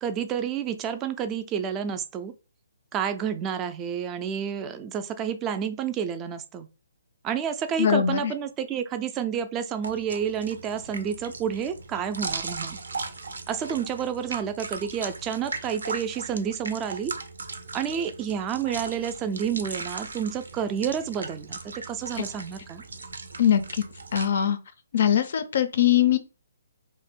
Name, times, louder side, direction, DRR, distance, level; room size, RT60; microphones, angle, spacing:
voice 1, 0.0-2.3 2.9-6.7 7.2-12.8 13.5-17.1 17.7-22.8, right 8 dB, 20° right, 0.3 m, -30 dB
voice 2, 7.8-8.3 23.4-23.8 24.1-24.6 24.9-26.2, left 9 dB, 60° left, 0.4 m, -21 dB
sound 1, 9.8-24.3, right 4 dB, 80° right, 0.5 m, -38 dB
2.5 x 2.1 x 3.5 m
hypercardioid pair, 145°, 0 cm